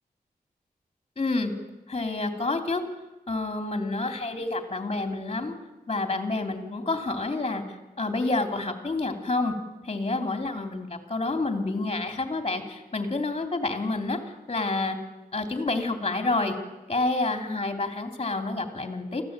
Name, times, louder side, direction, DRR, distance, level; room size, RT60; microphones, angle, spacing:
voice 1, 1.2-1.5 1.9-2.8 3.3-5.5 5.9-7.6 8.0-9.5 9.8-14.2 14.5-15.0 15.3-16.5 16.9-19.2, left 2 dB, 35° left, 7 dB, 3.2 m, -28 dB
24.5 x 15.5 x 9.0 m, 1.1 s
wide cardioid pair, 85°, 16 cm